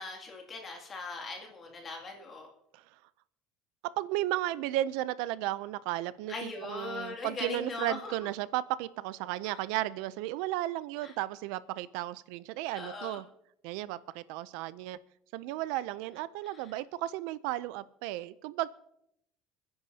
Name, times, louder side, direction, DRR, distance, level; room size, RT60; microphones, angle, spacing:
voice 1, 0.0-2.5 6.3-8.3 9.4-9.6 11.0-11.1 12.7-13.2 16.5-16.7, left 3 dB, 25° left, 1 dB, 2.5 m, -40 dB
voice 2, 3.8-13.2 13.6-15.0 15.3-18.7, right 15 dB, 75° right, 17 dB, 0.5 m, -34 dB
28.0 x 10.5 x 2.8 m, 0.77 s
cardioid pair, 170°, 0 cm